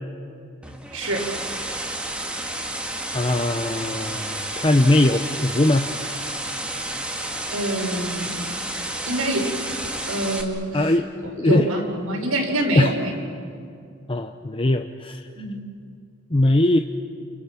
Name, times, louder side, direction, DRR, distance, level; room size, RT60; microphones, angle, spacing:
sound 1, 0.6-10.4, right 1 dB, 5° right, 1.8 m, -31 dB
voice 1, 0.9-1.3 7.5-8.3 9.1-9.5 10.0-13.1 15.3-15.6, right 1 dB, 85° right, 1 dB, 5.1 m, -26 dB
voice 2, 3.1-5.9 10.7-11.1 11.4-11.7 12.8-12.9 14.1-15.2 16.3-16.8, left 1 dB, 25° left, 5 dB, 0.7 m, -20 dB
30.0 x 27.5 x 6.0 m, 2.4 s
head